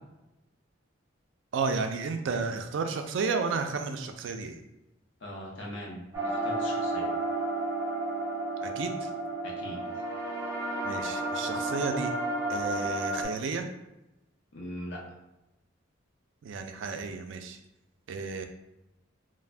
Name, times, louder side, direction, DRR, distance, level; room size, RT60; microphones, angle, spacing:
voice 1, 1.5-4.6 8.6-9.1 10.8-12.1 12.5-13.7 16.4-17.6 18.1-18.5, right 4 dB, 65° right, 6 dB, 0.3 m, -32 dB
voice 2, 5.2-7.1 9.4-9.8 14.5-15.0, equal, 60° left, -2 dB, 0.7 m, -40 dB
sound 1, 6.1-13.2, right 2 dB, 15° right, 0.6 m, -32 dB
2.5 x 2.0 x 3.2 m, 0.95 s
head